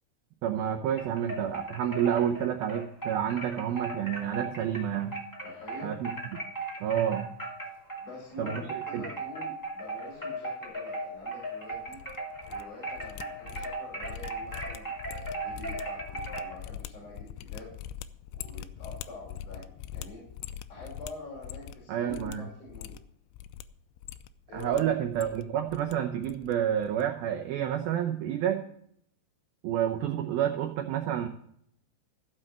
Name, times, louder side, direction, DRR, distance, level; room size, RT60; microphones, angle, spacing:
voice 1, 0.4-5.2 5.8-6.4 6.8-7.3 8.4-8.6 8.9-9.1 21.9-22.4 24.5-28.6 29.6-31.3, right 10 dB, 80° right, 4 dB, 2.2 m, -29 dB
sound 1, 1.0-8.1 8.4-16.5, right 2 dB, 10° left, 1.2 m, -37 dB
voice 2, 5.4-5.9 8.0-12.0 12.4-17.7 18.3-20.3 20.7-23.0 24.5-24.9, left 2 dB, 40° left, -4 dB, 5.9 m, -46 dB
sound 2, 11.7-12.6 12.9-21.8 22.1-22.4 22.7-23.6 24.0-24.8 25.1-25.9 26.2-26.5 26.8-27.0, left 10 dB, 85° left, 3.0 m, -42 dB
15.0 x 6.7 x 7.3 m, 0.68 s
omnidirectional pair, 5.4 m